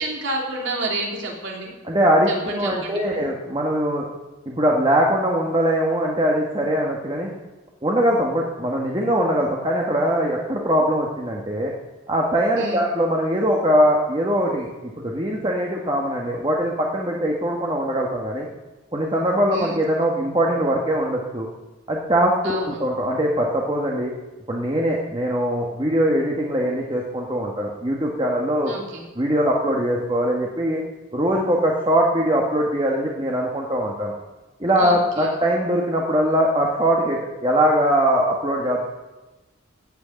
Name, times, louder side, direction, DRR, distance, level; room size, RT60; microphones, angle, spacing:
voice 1, 0.0-1.7 2.3-3.2 12.6-12.8 19.5-19.8 22.4-22.8 28.6-29.0 34.8-35.3, right 2 dB, 60° right, -1 dB, 3.2 m, -29 dB
voice 2, 1.8-4.1 4.4-7.3 7.8-11.7 12.1-18.5 18.9-21.5 21.9-24.1 24.5-28.8 29.1-30.8 31.1-34.1 34.6-38.8, equal, 20° right, -2 dB, 1.5 m, -21 dB
15.0 x 6.4 x 9.2 m, 1.1 s
head